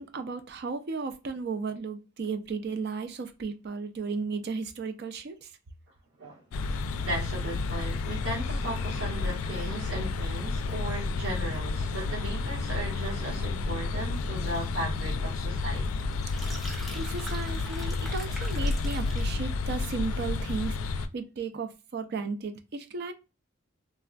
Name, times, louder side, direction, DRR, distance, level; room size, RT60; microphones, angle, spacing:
voice 1, 0.0-5.5 16.9-23.1, right 4 dB, 50° right, 0.4 m, -35 dB
sound 1, 6.5-21.1, left 3 dB, 90° left, 0.3 m, -31 dB
voice 2, 7.0-15.9, right 1 dB, 90° right, 1.4 m, -36 dB
sound 2, 16.1-19.4, equal, ahead, 0.7 m, -43 dB
3.3 x 2.4 x 2.2 m
head